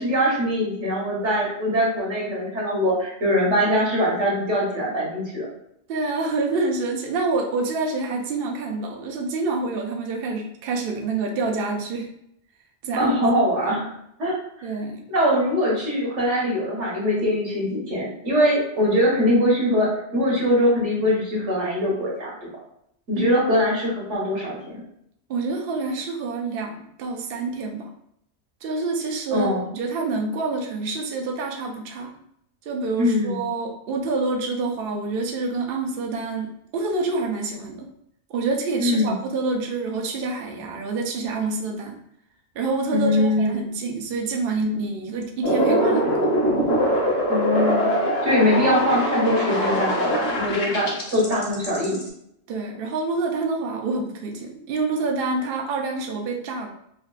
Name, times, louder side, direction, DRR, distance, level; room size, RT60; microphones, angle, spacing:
voice 1, 0.0-5.5 13.0-13.9 14.2-14.3 15.1-22.3 23.1-24.8 29.3-29.6 33.0-33.4 38.8-39.2 42.9-43.6 47.3-47.9 48.2-52.0, equal, 90° right, -5 dB, 1.6 m, -22 dB
voice 2, 5.9-12.1 12.8-13.2 13.7-13.8 14.6-15.0 23.2-23.4 25.3-27.9 28.6-32.1 32.7-37.9 38.3-42.0 42.5-46.3 52.5-56.7, right 3 dB, 60° right, 1 dB, 0.7 m, -27 dB
sound 1, 45.4-52.1, equal, 65° left, 1.2 m, -23 dB
5.0 x 2.4 x 2.4 m, 0.74 s
omnidirectional pair, 1.2 m